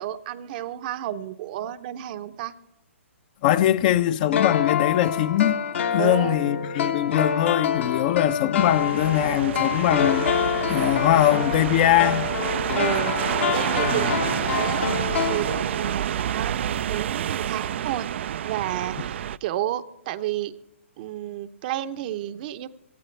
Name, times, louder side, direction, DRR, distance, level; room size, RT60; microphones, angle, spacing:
voice 1, 0.0-2.6 6.0-6.4 12.7-14.8 15.1-18.1 18.4-20.5 21.0-22.7, right 12 dB, 40° right, 0.8 m, -31 dB
voice 2, 3.4-5.6 5.9-10.3 10.7-12.3 13.5-14.1, left 12 dB, 40° left, 0.6 m, -22 dB
sound 1, 4.3-16.0 16.2-16.3, left 7 dB, 60° left, 1.3 m, -27 dB
sound 2, 8.6-19.4, right 10 dB, 60° right, 0.4 m, -28 dB
18.0 x 14.0 x 3.3 m
hypercardioid pair, 135°, 7 cm